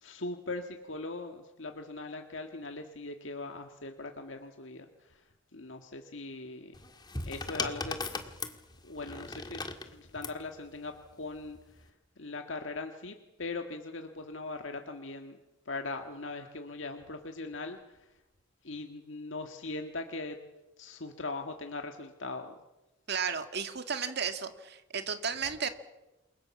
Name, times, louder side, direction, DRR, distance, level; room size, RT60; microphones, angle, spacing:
voice 1, 0.0-6.7 7.2-8.1 8.8-9.6 9.9-11.9 12.2-15.4 15.7-18.1 18.6-20.4 20.8-22.5, left 3 dB, 80° left, 5 dB, 1.8 m, -40 dB
sound 1, 6.7-10.4 11.5-11.8, left 3 dB, 20° left, 1.9 m, -38 dB
voice 2, 23.1-25.7, right 6 dB, 60° right, 8 dB, 2.1 m, -33 dB
28.5 x 22.5 x 7.2 m, 1.0 s
head